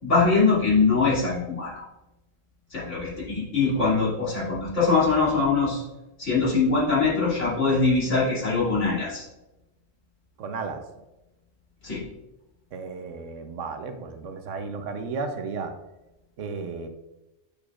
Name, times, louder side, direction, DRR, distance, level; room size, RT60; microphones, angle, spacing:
voice 1, 0.0-1.8 2.7-5.8 6.2-9.2 11.8-12.0, left 4 dB, 70° left, -7 dB, 3.1 m, -22 dB
voice 2, 10.4-10.8 12.7-15.7 16.4-16.9, right 4 dB, 80° right, 7 dB, 1.2 m, -33 dB
8.7 x 6.4 x 2.4 m, 0.97 s
omnidirectional pair, 1.3 m